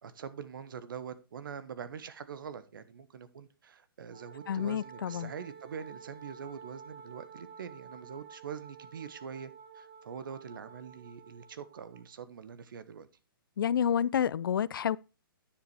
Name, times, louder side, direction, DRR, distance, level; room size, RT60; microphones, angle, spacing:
voice 1, 0.0-13.1, right 7 dB, 60° right, 1.2 m, -44 dB
Wind instrument woodwind instrument, 4.1-12.1, right 6 dB, 25° right, 1.2 m, -51 dB
voice 2, 4.5-5.3 13.6-15.0, left 8 dB, 65° left, 0.4 m, -29 dB
10.5 x 4.9 x 4.8 m
hypercardioid pair, 160°, 12 cm